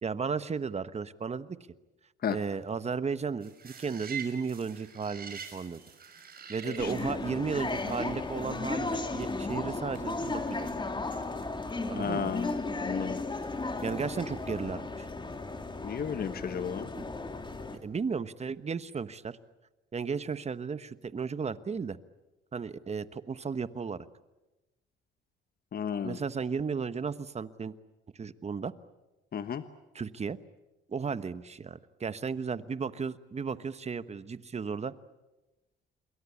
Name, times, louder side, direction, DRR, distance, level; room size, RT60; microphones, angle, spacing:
voice 1, 0.0-1.6 2.3-5.8 6.5-10.7 11.9-12.3 13.8-15.1 17.0-17.1 17.7-19.4 19.9-22.0 22.5-24.1 26.0-27.7 28.1-28.7 29.9-30.4 30.9-34.9, right 5 dB, 35° right, 14 dB, 1.2 m, -34 dB
sound 1, 3.4-9.5 9.9-10.0 10.2-11.5 11.8-11.9 12.3-14.8 15.3-16.2 16.6-16.9, right 7 dB, 50° right, 5.8 m, -47 dB
Gare du Nord, 6.8-17.8, left 3 dB, 25° left, 3.0 m, -35 dB
voice 2, 12.0-12.5 12.8-13.2 15.8-16.9 25.7-26.2 29.3-29.6, left 7 dB, 50° left, 10 dB, 1.3 m, -33 dB
28.0 x 22.5 x 8.5 m, 1.1 s
cardioid pair, 90°, 20 cm